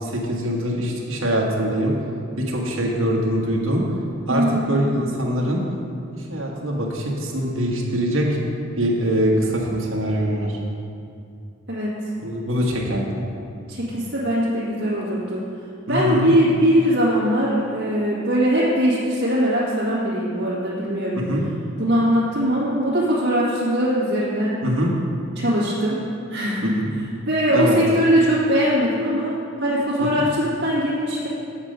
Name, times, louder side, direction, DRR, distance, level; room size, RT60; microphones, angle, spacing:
voice 1, 0.0-1.9 2.5-3.8 4.3-5.6 6.1-8.3 8.8-10.6 12.2-13.2 15.9-16.3 21.1-21.4 24.6-24.9 26.6-26.9 27.5-27.8 30.0-30.3, equal, 75° right, -2 dB, 1.4 m, -23 dB
voice 2, 4.3-4.7 11.7-12.0 13.7-15.4 15.9-21.2 21.8-24.6 25.4-26.0 26.3-26.8 27.3-31.3, equal, 55° right, -10 dB, 1.9 m, -21 dB
7.4 x 7.3 x 5.2 m, 2.5 s
head